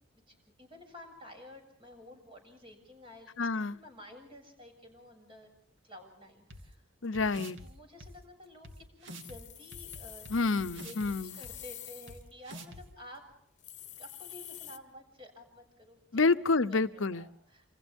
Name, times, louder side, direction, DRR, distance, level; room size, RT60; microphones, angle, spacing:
voice 1, 0.3-3.3 3.7-5.5 5.8-6.8 7.6-10.4 10.8-13.2 14.0-16.3 16.7-17.7, left 1 dB, 25° right, 4 dB, 7.0 m, -51 dB
voice 2, 3.4-3.8 7.0-7.6 10.3-11.4 16.1-17.3, left 3 dB, 75° left, 13 dB, 0.8 m, -28 dB
sound 1, 6.5-6.6 7.1-7.7 8.0-8.1 8.6-8.7 9.0-9.4 9.7-11.1 11.4-11.5 12.1-12.2 12.4-12.8, right 1 dB, 65° right, 2.6 m, -46 dB
sound 2, 9.2-12.3 12.9-13.0 13.3-13.4 13.6-14.8, left 12 dB, 35° left, 1.4 m, -47 dB
29.0 x 27.0 x 3.6 m, 0.70 s
head